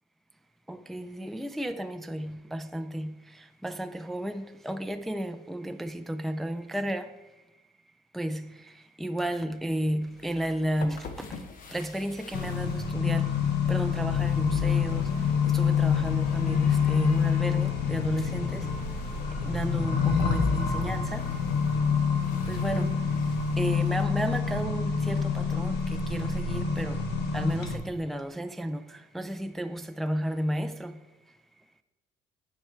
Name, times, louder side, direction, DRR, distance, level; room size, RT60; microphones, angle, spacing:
voice 1, 0.7-7.2 8.1-11.4 11.7-13.4 13.7-18.8 19.4-21.3 22.5-27.1 27.3-31.0, right 1 dB, ahead, 0.3 m, -33 dB
sound 1, 10.1-24.0, left 5 dB, 55° left, 0.9 m, -43 dB
Accelerating revving vroom, 12.3-27.8, left 6 dB, 75° left, 1.2 m, -27 dB
9.6 x 4.6 x 4.5 m
cardioid pair, 110°, 17 cm